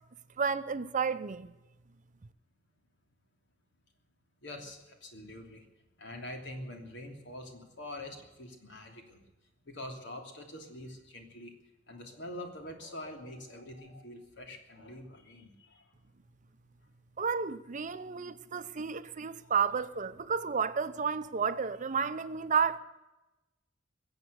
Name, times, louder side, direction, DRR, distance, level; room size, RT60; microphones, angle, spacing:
voice 1, 0.4-1.5 17.2-22.8, right 6 dB, 40° right, 0.7 m, -31 dB
voice 2, 4.4-5.6 6.0-9.2 9.6-11.5 11.9-15.8 19.5-19.6, left 1 dB, 65° left, 3.1 m, -45 dB
22.0 x 8.1 x 8.1 m
head